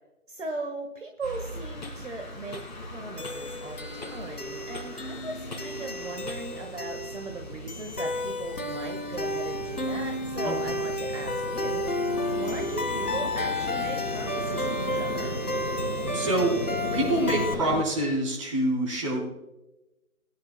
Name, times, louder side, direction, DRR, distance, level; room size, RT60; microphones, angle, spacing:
voice 1, 0.3-11.9 12.4-15.3, right 3 dB, 55° right, 3 dB, 1.6 m, -38 dB
sound 1, 1.2-17.8, left 2 dB, 30° left, 2.6 m, -37 dB
sound 2, 3.2-17.5, left 1 dB, 85° left, 1.7 m, -32 dB
voice 2, 10.4-10.7 16.1-16.5 16.9-19.2, right 1 dB, 20° right, -3 dB, 3.6 m, -26 dB
21.0 x 10.5 x 2.2 m, 0.98 s
figure-of-eight pair, 165°, 45 cm